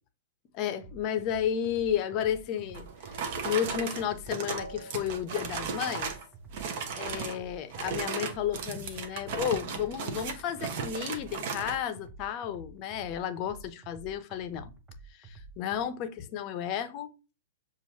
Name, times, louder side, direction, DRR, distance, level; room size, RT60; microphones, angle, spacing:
voice 1, 0.5-2.9 3.2-6.1 6.9-14.7 15.2-17.1, left 9 dB, 35° left, 0.7 m, -32 dB
sound 1, 0.8-15.8, right 2 dB, 15° right, 0.8 m, -50 dB
sound 2, 2.7-6.2 6.5-7.4 7.7-11.8, right 6 dB, 45° right, 0.9 m, -36 dB
6.9 x 2.5 x 2.9 m
figure-of-eight pair, 105°, 0 cm